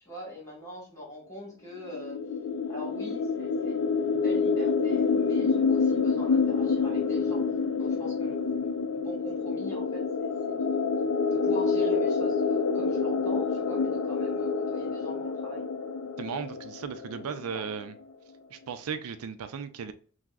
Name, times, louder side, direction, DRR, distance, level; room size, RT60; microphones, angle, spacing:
voice 1, 0.0-2.2 2.7-7.4 7.8-15.7 17.0-17.7, left 1 dB, 15° left, 1.5 m, -42 dB
sound 1, 1.9-17.5, left 5 dB, 85° left, 0.4 m, -27 dB
voice 2, 16.2-17.9 18.5-19.9, right 6 dB, 75° right, 0.4 m, -36 dB
5.9 x 2.0 x 2.3 m
head